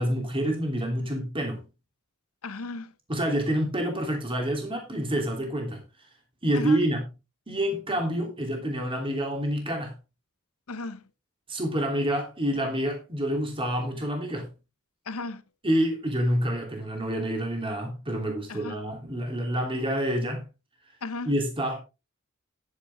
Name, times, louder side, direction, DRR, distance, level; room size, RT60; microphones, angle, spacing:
voice 1, 0.0-1.6 3.1-5.8 6.4-7.0 7.5-9.9 11.5-14.5 15.6-20.4 21.2-21.8, right 1 dB, 25° right, 3.0 m, -27 dB
voice 2, 2.4-2.9 6.5-6.8 10.7-11.0 15.1-15.4 18.5-18.8 21.0-21.3, left 3 dB, 85° left, 1.0 m, -35 dB
10.5 x 9.8 x 3.4 m
head